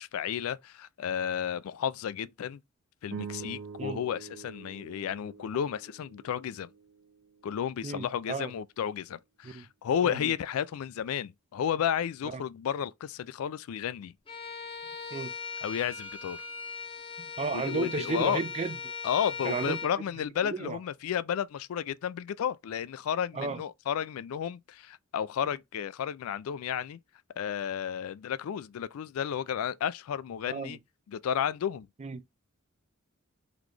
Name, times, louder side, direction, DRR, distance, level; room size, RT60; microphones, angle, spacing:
voice 1, 0.0-2.6 3.0-6.7 7.4-14.1 15.6-16.4 17.5-18.4 19.0-27.0 27.4-30.8 31.1-31.9, left 8 dB, 75° left, 0.3 m, -32 dB
sound 1, 3.1-7.6, right 5 dB, 55° right, 0.7 m, -45 dB
voice 2, 7.8-8.5 9.4-9.7 10.0-10.3 12.3-12.4 15.1-15.3 17.2-18.9 19.4-19.8 20.4-20.8 23.3-23.6 30.5-30.8 32.0-32.2, right 4 dB, 30° right, 0.4 m, -33 dB
Bowed string instrument, 14.3-20.0, left 5 dB, 25° left, 0.7 m, -39 dB
4.0 x 3.0 x 3.2 m
head